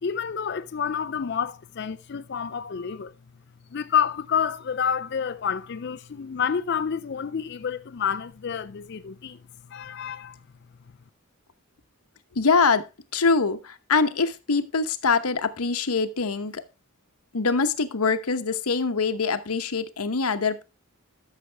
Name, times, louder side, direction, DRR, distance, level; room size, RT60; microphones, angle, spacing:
voice 1, 0.0-3.1 3.7-9.4 9.7-10.4, left 7 dB, 50° left, 0.4 m, -28 dB
voice 2, 12.4-12.9 13.1-16.6 17.3-20.6, left 4 dB, 85° left, 1.0 m, -24 dB
13.5 x 6.6 x 3.4 m
head